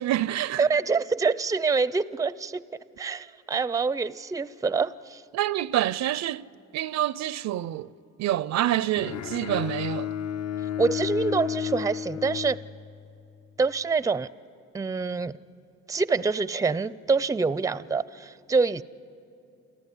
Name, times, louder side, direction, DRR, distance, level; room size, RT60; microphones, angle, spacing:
voice 1, 0.0-0.6 5.3-6.5 6.7-7.9 8.2-10.1, right 13 dB, 65° right, 0.5 m, -27 dB
voice 2, 0.6-2.6 3.0-5.2 10.8-12.6 13.6-14.3 14.7-15.3 15.9-18.8, right 4 dB, 10° right, 0.4 m, -26 dB
Bowed string instrument, 9.0-13.2, left 9 dB, 55° left, 0.7 m, -32 dB
28.5 x 14.5 x 9.9 m
cardioid pair, 90°, 30 cm